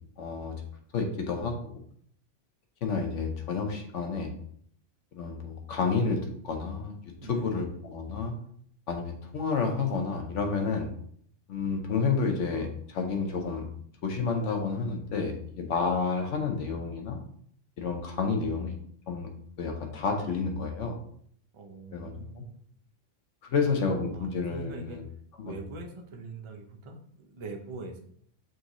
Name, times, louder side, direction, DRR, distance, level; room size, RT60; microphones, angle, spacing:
voice 1, 0.2-0.5 0.9-1.8 2.8-4.3 5.1-6.2 6.4-7.0 7.3-8.3 8.9-10.9 11.5-13.7 14.0-17.2 17.8-18.8 19.1-19.3 19.6-21.0 21.9-22.1 22.4-22.5 23.4-25.0 25.4-25.6, left 4 dB, 75° left, 3 dB, 1.1 m, -30 dB
voice 2, 7.2-7.7 21.5-22.6 24.1-25.0 25.4-28.0, right 3 dB, 45° right, 3 dB, 0.4 m, -42 dB
6.2 x 2.7 x 3.0 m, 0.63 s
omnidirectional pair, 1.3 m